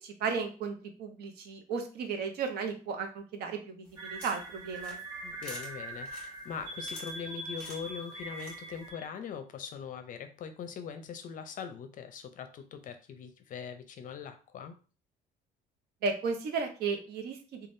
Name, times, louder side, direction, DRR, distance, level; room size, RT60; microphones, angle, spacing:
voice 1, 0.0-5.0 16.0-17.7, right 5 dB, 70° right, 5 dB, 0.7 m, -34 dB
sound 1, 3.8-8.9, left 1 dB, 5° left, 1.4 m, -51 dB
sound 2, 4.0-9.1, right 2 dB, 20° right, 0.7 m, -42 dB
voice 2, 5.2-14.8, left 7 dB, 50° left, 8 dB, 0.5 m, -42 dB
3.4 x 2.3 x 2.6 m, 0.36 s
cardioid pair, 110°, 17 cm